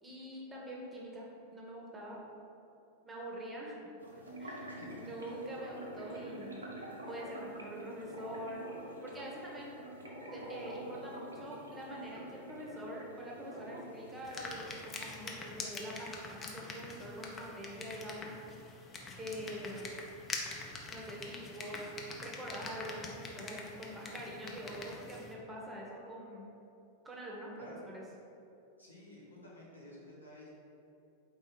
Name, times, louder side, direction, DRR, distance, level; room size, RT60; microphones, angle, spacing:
voice 1, 0.0-2.2 3.0-3.9 4.4-4.7 5.0-6.6 7.1-8.7 9.0-9.8 10.3-18.4 19.2-19.9 20.9-21.9 22.2-26.5 27.0-28.0, right 1 dB, 15° right, -3 dB, 0.9 m, -45 dB
sound 1, 4.0-14.6, right 1 dB, 75° right, 0.7 m, -47 dB
voice 2, 4.8-5.1 5.5-5.6 27.6-27.8 28.8-30.5, left 1 dB, 85° left, -7 dB, 1.1 m, -52 dB
sound 2, 14.2-25.3, left 3 dB, 20° left, 0.6 m, -45 dB
4.1 x 3.1 x 4.0 m, 2.8 s
figure-of-eight pair, 90°, 0 cm